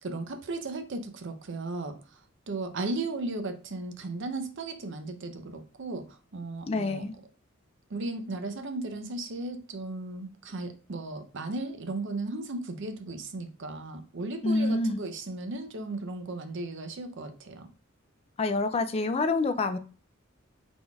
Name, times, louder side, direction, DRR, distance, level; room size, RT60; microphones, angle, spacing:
voice 1, 0.0-2.0 2.5-7.0 7.9-17.7, right 2 dB, 65° right, 0.6 m, -36 dB
voice 2, 6.6-7.1 14.4-15.0 18.4-19.8, left 3 dB, 30° left, 0.4 m, -27 dB
3.9 x 3.8 x 2.3 m
head